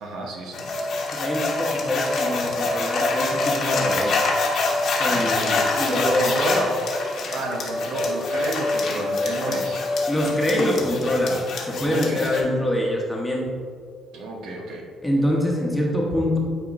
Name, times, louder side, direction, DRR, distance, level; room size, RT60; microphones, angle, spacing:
voice 1, 0.0-0.7 5.1-6.8 7.3-9.8 11.8-12.2 14.1-14.8, right 1 dB, 80° right, 0 dB, 1.1 m, -30 dB
sound 1, 0.5-12.4, left 3 dB, 55° left, 1.1 m, -25 dB
voice 2, 1.1-4.3 5.0-6.7 9.5-9.6 10.1-13.5 15.0-16.4, left 1 dB, 5° left, -2 dB, 1.1 m, -25 dB
9.1 x 4.4 x 2.6 m, 2.1 s
cardioid pair, 125°, 0 cm